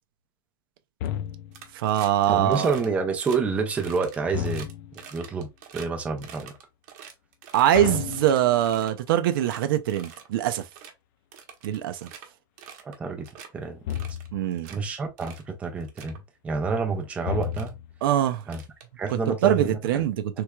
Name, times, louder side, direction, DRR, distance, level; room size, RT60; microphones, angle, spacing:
sound 1, 1.0-1.7 4.3-5.1 7.7-8.9 13.8-14.5 17.2-18.0, left 10 dB, 55° left, 0.4 m, -33 dB
sound 2, 1.5-2.2 2.5-2.9 3.2-3.4 3.7-5.9 6.2-7.8 8.1-9.0 9.3-9.6 9.9-10.3 10.6-10.9 11.3-12.3 12.6-13.0 13.2-13.5 13.9-14.8 15.2-15.5 15.8-16.2 17.0-17.1 17.4-17.7 18.4-19.3, right 8 dB, 50° right, 0.8 m, -45 dB
voice 1, 1.7-2.7 7.5-10.6 11.6-12.1 14.3-14.7 18.0-18.4 19.4-20.2, right 11 dB, 85° right, 0.5 m, -23 dB
voice 2, 2.3-4.7 5.1-5.5 5.7-6.5 12.8-13.3 13.5-13.8 14.7-17.8 18.5-18.6 19.0-20.0, right 4 dB, 10° right, 0.5 m, -28 dB
3.3 x 3.1 x 2.2 m
supercardioid pair, 165°, 11 cm